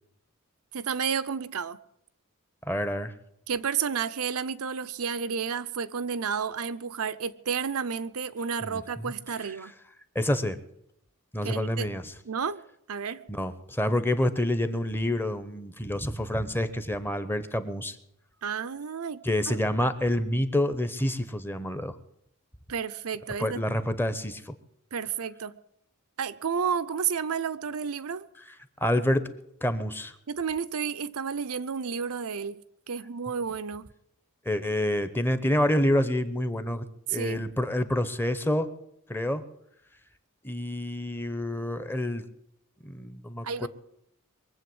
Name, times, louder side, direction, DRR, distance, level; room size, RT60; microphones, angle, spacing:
voice 1, 0.7-1.8 3.5-9.7 11.4-11.9 12.3-12.6 12.9-13.2 18.4-19.6 22.7-23.6 24.9-25.6 26.2-28.3 30.3-32.6 32.9-33.9 37.1-37.4 43.4-43.7, right 6 dB, 70° right, 0.6 m, -31 dB
voice 2, 2.7-3.1 8.6-9.1 10.1-10.6 11.3-12.1 13.3-18.0 19.2-22.0 23.4-24.5 28.8-29.3 29.6-30.1 34.5-38.7 39.1-39.4 40.4-42.2 42.8-43.7, left 1 dB, 10° left, 0.9 m, -28 dB
22.5 x 7.8 x 7.9 m
head